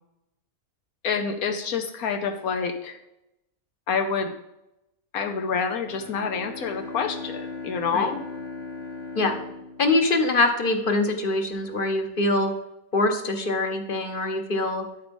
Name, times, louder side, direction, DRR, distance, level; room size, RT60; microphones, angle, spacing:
voice 1, 1.0-3.0 3.9-4.3 5.1-8.2, left 5 dB, 75° left, 5 dB, 1.3 m, -27 dB
Bowed string instrument, 5.8-10.8, left 4 dB, 55° left, 2.6 m, -38 dB
voice 2, 9.8-12.5 12.9-14.8, left 2 dB, 40° left, 6 dB, 1.2 m, -23 dB
12.0 x 4.9 x 5.3 m, 0.88 s
omnidirectional pair, 1.5 m